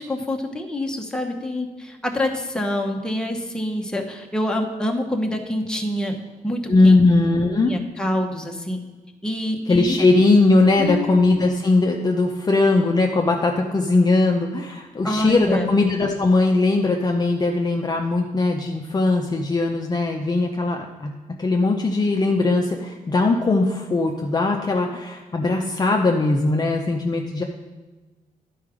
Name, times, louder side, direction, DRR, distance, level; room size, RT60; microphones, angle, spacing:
voice 1, 0.0-7.0 7.6-8.8 9.2-10.0 10.8-11.1 15.0-15.7, left 1 dB, 5° left, 1 dB, 0.9 m, -26 dB
voice 2, 6.7-7.7 9.7-21.1 21.4-27.4, left 2 dB, 25° left, 1 dB, 0.6 m, -19 dB
11.0 x 4.7 x 4.9 m, 1.2 s
cardioid pair, 120°, 15 cm